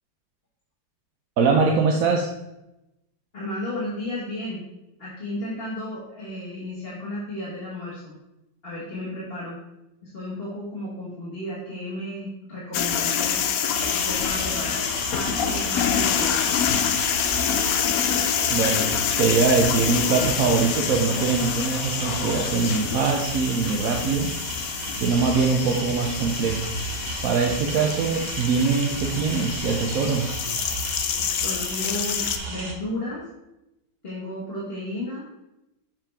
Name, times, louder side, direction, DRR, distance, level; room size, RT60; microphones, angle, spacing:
voice 1, 1.4-2.3 18.5-18.9 19.2-24.3 25.0-26.7 27.2-30.3, right 5 dB, 60° right, 1 dB, 0.9 m, -22 dB
voice 2, 3.3-4.6 5.0-8.1 8.6-9.6 10.0-13.4 13.9-14.8 15.1-16.6 31.2-33.2 34.0-35.3, left 1 dB, 30° left, -9 dB, 1.8 m, -33 dB
sound 1, 12.7-32.4, left 8 dB, 75° left, 0.8 m, -27 dB
sound 2, 13.7-32.7, right 2 dB, 40° right, 0.7 m, -34 dB
6.9 x 5.8 x 3.4 m, 0.91 s
omnidirectional pair, 2.0 m